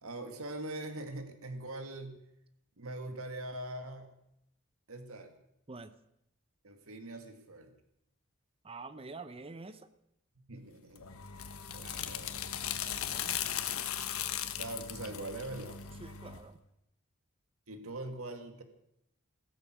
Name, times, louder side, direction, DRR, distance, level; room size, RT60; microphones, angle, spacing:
voice 1, 0.0-2.2 2.8-4.2 4.9-5.4 6.6-7.7 10.5-12.3 14.5-15.8 17.7-18.6, right 2 dB, 80° right, 7 dB, 2.0 m, -42 dB
voice 2, 8.6-9.9 12.8-13.5 16.0-16.6, right 3 dB, 25° right, 12 dB, 0.6 m, -47 dB
sound 1, 11.0-16.4, left 9 dB, 90° left, 1.3 m, -38 dB
16.0 x 14.0 x 6.1 m, 0.79 s
head